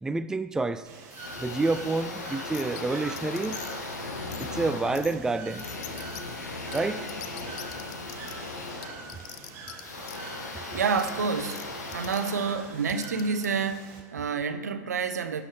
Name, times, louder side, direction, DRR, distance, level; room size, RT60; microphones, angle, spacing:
voice 1, 0.0-0.9 1.4-3.6 4.4-5.8 6.7-7.1 10.5-10.8, right 3 dB, 5° right, 11 dB, 0.4 m, -29 dB
Bird / Water, 0.9-14.0, right 3 dB, 35° right, 2.5 m, -45 dB
sound 1, 1.1-13.3, left 2 dB, 80° left, 1.4 m, -38 dB
sound 2, 2.5-2.8 3.2-3.8 4.3-4.5 4.9-5.1 5.6-6.2 6.7-6.8 7.1-8.3 8.8-9.8 10.0-10.2 11.0-11.1 11.5-11.6 11.9-12.3 12.9-13.5, left 13 dB, 45° left, 0.6 m, -42 dB
voice 2, 10.7-11.6 11.9-15.4, right 5 dB, 80° right, 9 dB, 0.8 m, -28 dB
15.5 x 6.2 x 3.3 m, 1.4 s
hypercardioid pair, 95°, 9 cm